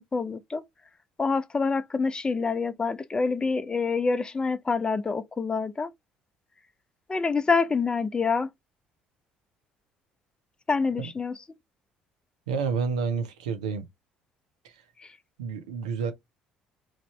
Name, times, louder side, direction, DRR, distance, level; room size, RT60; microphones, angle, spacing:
voice 1, 0.1-0.6 1.2-5.9 7.1-8.5 10.7-11.4 15.0-15.1, left 4 dB, 25° left, 0.5 m, -26 dB
voice 2, 12.5-13.8 14.6-14.7 15.4-16.1, right 5 dB, 90° right, 0.7 m, -29 dB
3.2 x 2.6 x 3.1 m
hypercardioid pair, 60°, 3 cm